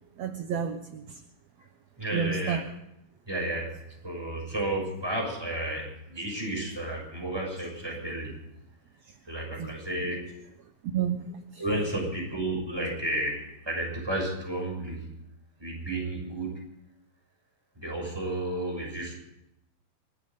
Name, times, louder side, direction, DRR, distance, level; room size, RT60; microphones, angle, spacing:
voice 1, 0.2-1.2 2.1-2.7 9.6-9.8 10.8-11.6, right 7 dB, 60° right, 6 dB, 2.1 m, -31 dB
voice 2, 2.0-2.6 3.3-3.7 4.0-8.3 9.3-10.2 11.6-15.0 15.6-16.5 17.8-19.1, right 1 dB, 5° right, -1 dB, 6.4 m, -32 dB
29.0 x 12.5 x 3.8 m, 0.83 s
omnidirectional pair, 3.8 m